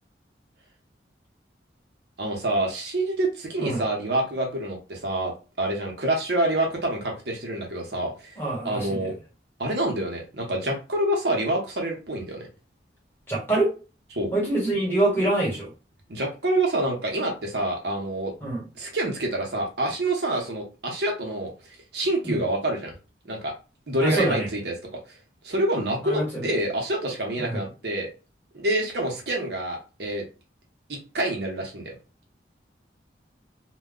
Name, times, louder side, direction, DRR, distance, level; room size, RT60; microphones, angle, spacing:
voice 1, 2.2-5.3 5.6-8.4 8.6-9.1 9.6-12.5 14.1-14.3 16.1-18.3 18.8-21.5 21.9-22.9 23.2-23.5 23.9-25.2 25.4-28.1 28.5-30.2 30.9-31.9, right 1 dB, 65° right, 0.8 m, -27 dB
voice 2, 8.4-9.0 13.3-13.7 14.3-15.7 18.4-18.6 22.2-22.4 24.0-24.5 26.0-26.5 27.4-27.6, right 1 dB, 10° left, 1.1 m, -25 dB
2.2 x 2.2 x 3.6 m
head